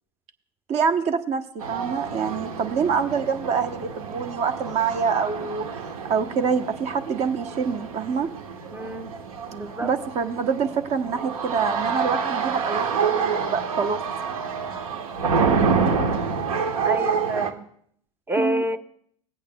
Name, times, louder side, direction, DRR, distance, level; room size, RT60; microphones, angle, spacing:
voice 1, 0.7-5.7 6.1-8.3 9.8-14.0 18.4-18.6, right 6 dB, 35° right, 7 dB, 1.0 m, -26 dB
sound 1, 1.6-17.5, right 5 dB, 80° right, 1.3 m, -28 dB
voice 2, 8.7-9.1 9.5-9.9 16.8-17.6 18.3-18.8, equal, 10° right, 8 dB, 0.7 m, -28 dB
20.0 x 8.4 x 2.3 m, 0.66 s
hypercardioid pair, 100°, 18 cm